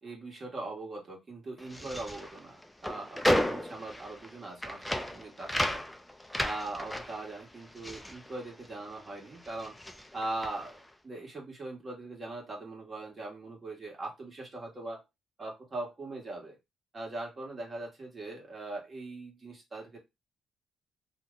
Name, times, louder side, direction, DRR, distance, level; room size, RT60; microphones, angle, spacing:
voice 1, 0.0-5.8 6.4-9.7 10.1-15.0 15.4-16.6 16.9-20.0, right 2 dB, 35° right, -1 dB, 1.3 m, -40 dB
sound 1, 1.6-9.1 9.3-10.8, left 1 dB, 5° left, 0.4 m, -34 dB
2.8 x 2.2 x 3.7 m, 0.22 s
cardioid pair, 90°, 0 cm